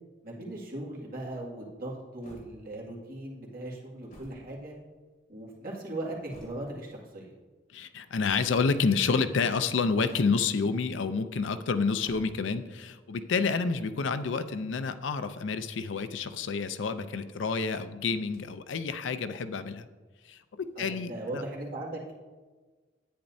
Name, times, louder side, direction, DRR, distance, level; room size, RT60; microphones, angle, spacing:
voice 1, 0.2-4.7 5.3-7.3 20.8-22.1, right 1 dB, 50° right, -4 dB, 2.1 m, -38 dB
sound 1, 2.2-3.0 3.8-5.2 5.9-6.9 8.1-8.7 9.9-10.6 11.8-12.7 14.2-15.1 16.0-17.0 18.2-18.8 19.1-19.2 20.2-20.9, equal, 50° left, 2.6 m, -57 dB
voice 2, 7.7-19.9 20.2-21.4, left 4 dB, 80° left, 11 dB, 0.5 m, -29 dB
10.0 x 8.8 x 2.7 m, 1.3 s
head